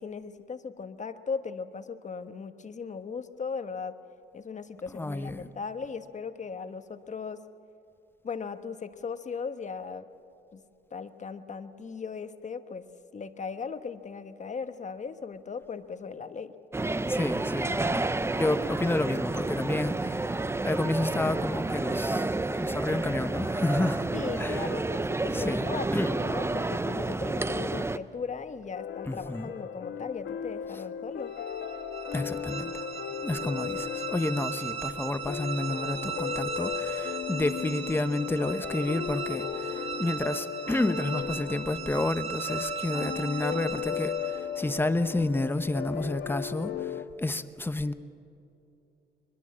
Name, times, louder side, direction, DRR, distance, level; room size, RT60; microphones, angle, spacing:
voice 1, 0.0-4.0 4.3-7.4 8.2-10.1 10.5-10.6 10.9-12.8 13.1-16.5 24.1-31.3, left 5 dB, 35° left, 1.3 m, -37 dB
voice 2, 4.9-5.5 17.1-24.1 24.4-24.7 25.2-25.7 25.9-26.1 29.1-29.5 32.1-32.7 33.2-47.9, left 2 dB, 10° left, 0.9 m, -30 dB
sound 1, 16.7-28.0, right 2 dB, 15° right, 0.6 m, -30 dB
sound 2, 28.7-47.0, left 8 dB, 65° left, 1.3 m, -36 dB
sound 3, 31.3-44.6, right 7 dB, 30° right, 2.7 m, -38 dB
22.0 x 22.0 x 7.5 m
cardioid pair, 90°, 20 cm